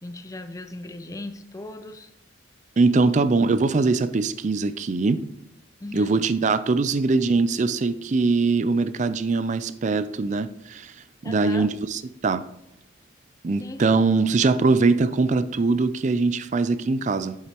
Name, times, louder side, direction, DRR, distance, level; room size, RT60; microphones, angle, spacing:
voice 1, 0.0-2.1 5.8-6.2 11.2-11.7 13.6-13.8, left 2 dB, 15° left, 0.5 m, -37 dB
voice 2, 2.8-5.2 5.9-10.9 11.2-12.4 13.4-17.4, right 3 dB, 40° right, 0.4 m, -22 dB
8.3 x 7.6 x 2.9 m
head